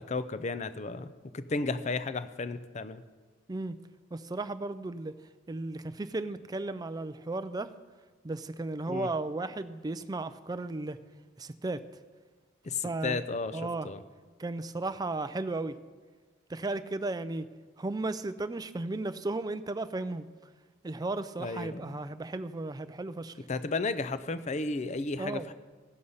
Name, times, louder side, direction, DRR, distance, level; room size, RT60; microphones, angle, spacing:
voice 1, 0.0-3.0 8.9-9.1 12.6-14.0 21.4-22.0 23.5-25.5, left 3 dB, 35° left, 13 dB, 0.5 m, -33 dB
voice 2, 4.1-5.2 5.5-7.7 8.2-11.0 11.4-11.8 12.8-13.2 13.5-13.9 14.4-15.8 16.5-17.5 17.8-20.3 20.8-23.4 25.2-25.5, right 2 dB, 20° right, 12 dB, 0.4 m, -35 dB
15.5 x 6.5 x 5.5 m, 1.4 s
head